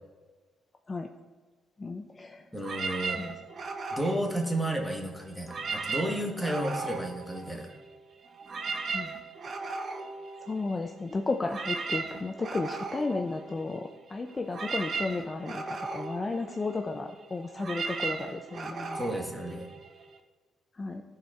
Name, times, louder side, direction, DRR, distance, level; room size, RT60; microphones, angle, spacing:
voice 1, 1.8-2.4 3.2-3.4 8.9-9.1 9.5-9.9 10.4-19.2 20.7-21.0, left 3 dB, 30° left, 5 dB, 0.4 m, -34 dB
voice 2, 2.5-3.2 3.9-7.7 18.9-19.7, right 1 dB, ahead, 1 dB, 1.1 m, -32 dB
sound 1, 2.6-5.0 5.4-7.9 8.2-20.2, right 4 dB, 45° right, 0.6 m, -37 dB
12.5 x 4.3 x 2.4 m, 1.4 s
cardioid pair, 90°, 0 cm